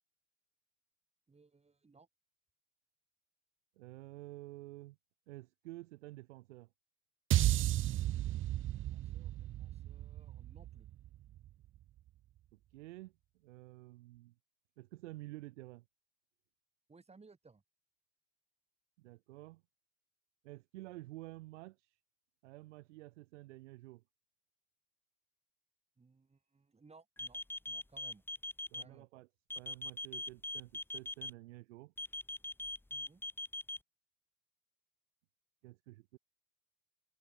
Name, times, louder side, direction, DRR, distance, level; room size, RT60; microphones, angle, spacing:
voice 1, 1.3-2.1 8.7-10.9 16.9-17.6 26.0-28.2 28.8-29.1 32.9-33.2, right 4 dB, 15° right, 4.9 m, -62 dB
voice 2, 3.8-5.0 5.3-6.7 12.5-14.3 14.8-15.8 19.0-19.6 20.4-22.0 22.4-24.0 28.7-29.3 29.5-31.9 35.6-36.2, right 19 dB, 75° right, 4.9 m, -51 dB
sound 1, 7.3-11.7, right 14 dB, 35° right, 0.6 m, -34 dB
sound 2, 27.2-28.8 29.5-31.3 32.0-33.8, left 2 dB, 5° left, 1.7 m, -41 dB
hypercardioid pair, 85°, 36 cm